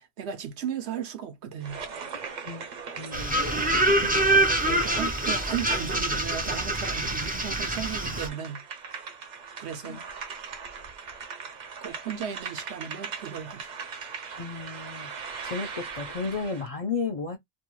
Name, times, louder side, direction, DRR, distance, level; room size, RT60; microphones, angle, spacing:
voice 1, 0.0-1.8 4.6-8.6 9.6-10.0 11.8-13.7, right 8 dB, 90° right, 1.0 m, -35 dB
sound 1, 1.6-16.7, right 5 dB, 50° right, 0.6 m, -40 dB
voice 2, 3.0-3.4 9.8-10.0 14.4-15.1 15.4-17.4, left 4 dB, 50° left, 0.4 m, -33 dB
sound 2, 3.1-8.3, right 1 dB, 10° right, 0.4 m, -25 dB
2.6 x 2.2 x 3.0 m
omnidirectional pair, 1.1 m